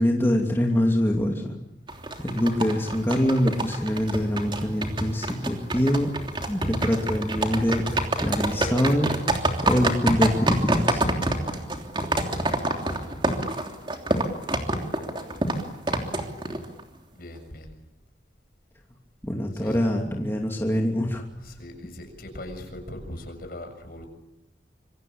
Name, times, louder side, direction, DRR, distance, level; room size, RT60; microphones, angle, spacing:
voice 1, 0.0-1.6 2.2-6.1 6.5-7.9 8.2-9.1 9.6-11.1 19.2-21.2, equal, 15° left, 1 dB, 2.8 m, -24 dB
sound 1, 1.9-16.8, right 2 dB, 25° right, 3.2 m, -27 dB
voice 2, 17.1-17.8 19.5-20.0 21.3-24.1, left 1 dB, 55° left, 5 dB, 6.9 m, -40 dB
27.0 x 25.0 x 8.7 m, 0.85 s
head